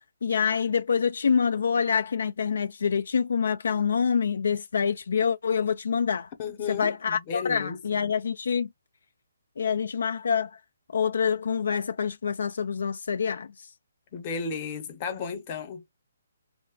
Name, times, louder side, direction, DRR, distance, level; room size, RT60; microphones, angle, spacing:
voice 1, 0.2-6.3 6.7-8.7 9.6-10.5 10.9-13.7, left 6 dB, 70° left, 0.3 m, -26 dB
voice 2, 6.4-8.2 14.1-15.9, left 5 dB, 30° left, 0.8 m, -34 dB
2.4 x 2.1 x 3.7 m
hypercardioid pair, 160°, 0 cm